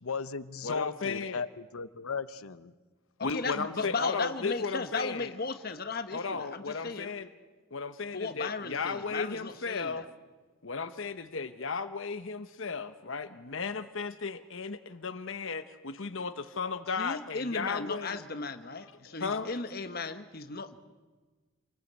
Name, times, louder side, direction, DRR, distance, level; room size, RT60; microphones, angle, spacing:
voice 1, 0.0-2.7, left 5 dB, 90° left, 14 dB, 0.9 m, -36 dB
voice 2, 0.6-1.4 3.2-5.3 6.1-7.3 7.7-10.0 10.6-18.2 19.1-19.5, left 4 dB, 65° left, 11 dB, 0.9 m, -35 dB
voice 3, 3.2-7.1 8.1-10.0 17.0-20.8, left 3 dB, 45° left, 9 dB, 1.2 m, -36 dB
27.5 x 20.5 x 8.1 m, 1.3 s
head